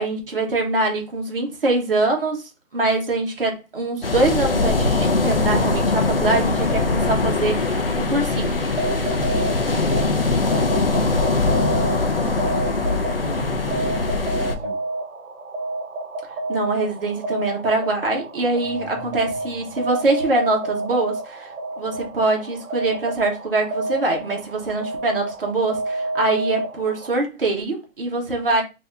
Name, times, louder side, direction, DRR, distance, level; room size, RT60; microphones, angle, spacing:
voice 1, 0.0-8.7 16.5-21.5 21.8-28.6, right 2 dB, 40° right, 1.1 m, -23 dB
sound 1, 4.0-14.5, left 3 dB, 45° left, 0.5 m, -21 dB
sound 2, 8.6-27.1, right 2 dB, 80° right, 1.1 m, -30 dB
voice 2, 12.5-14.7 18.6-19.5 19.7-19.8, equal, 10° left, 1.5 m, -38 dB
3.9 x 2.8 x 3.3 m
hypercardioid pair, 180°, 41 cm